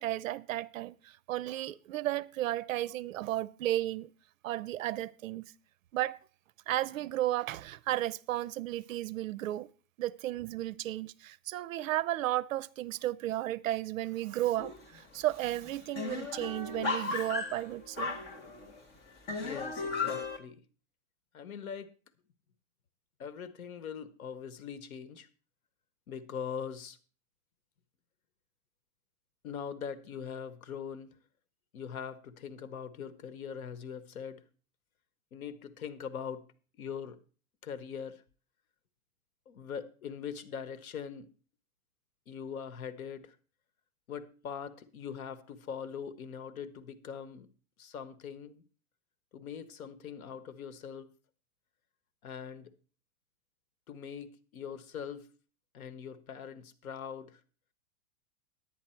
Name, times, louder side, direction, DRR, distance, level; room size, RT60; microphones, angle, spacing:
voice 1, 0.0-4.1 4.4-5.5 5.9-6.2 6.7-9.7 10.0-18.2, right 14 dB, 70° right, 0.6 m, -34 dB
sound 1, 14.6-15.0 15.3-15.4 15.6-18.8 19.3-20.4, left 4 dB, 25° left, 1.5 m, -35 dB
voice 2, 19.4-20.6 21.3-21.9 23.2-25.3 26.1-27.0 29.4-31.2 31.7-34.4 35.3-36.5 36.8-37.2 37.6-38.2 39.5-41.3 42.3-43.3 44.1-47.5 47.8-48.6 49.3-51.1 52.2-52.7 53.9-55.3 55.7-57.4, left 7 dB, 85° left, 1.3 m, -42 dB
10.0 x 9.5 x 4.4 m
supercardioid pair, 160°, 42 cm